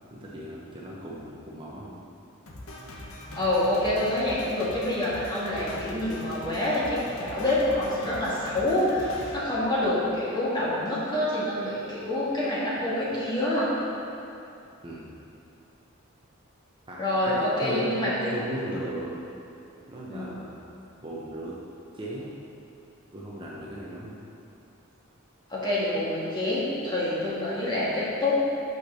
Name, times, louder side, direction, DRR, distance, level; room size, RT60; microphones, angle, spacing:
voice 1, 0.1-2.0 14.8-15.1 16.9-19.2 19.9-20.6 21.0-21.5 21.9-22.3 23.1-24.2, right 1 dB, 25° right, -5 dB, 0.8 m, -36 dB
Drum kit, 2.5-10.2, left 1 dB, 80° left, 1.1 m, -42 dB
voice 2, 3.4-13.7 17.0-18.1 20.1-20.3 25.5-28.4, left 1 dB, 20° left, -8 dB, 1.8 m, -27 dB
6.0 x 5.9 x 6.2 m, 2.7 s
head